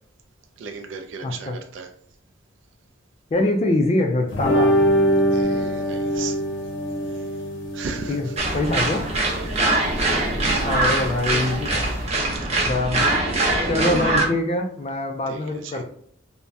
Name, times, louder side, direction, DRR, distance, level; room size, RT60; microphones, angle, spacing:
voice 1, 0.6-1.9 5.3-6.4 7.1-7.3 7.7-8.4 9.2-9.6 11.8-12.5 15.3-15.8, right 5 dB, 70° right, 5 dB, 0.3 m, -36 dB
voice 2, 1.2-1.6 3.3-4.7 8.1-8.3 8.5-9.0 10.6-11.9 12.7-13.1 13.7-15.8, left 2 dB, 35° left, 4 dB, 0.3 m, -24 dB
sound 1, 4.3-12.0, equal, 70° left, 0.6 m, -24 dB
sound 2, 8.4-14.3, right 2 dB, 30° right, 0.6 m, -22 dB
3.3 x 2.0 x 2.6 m, 0.64 s
head